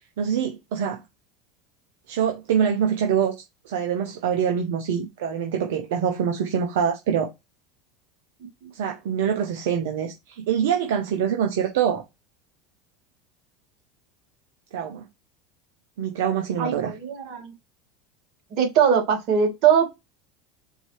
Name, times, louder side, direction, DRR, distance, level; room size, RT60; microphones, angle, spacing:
voice 1, 0.2-1.0 2.1-7.3 8.7-12.0 14.7-15.0 16.0-16.9, right 8 dB, 75° right, 0.8 m, -25 dB
voice 2, 16.6-17.5 18.5-19.9, right 7 dB, 60° right, 1.9 m, -21 dB
4.5 x 2.8 x 3.2 m
hypercardioid pair, 95°, 0 cm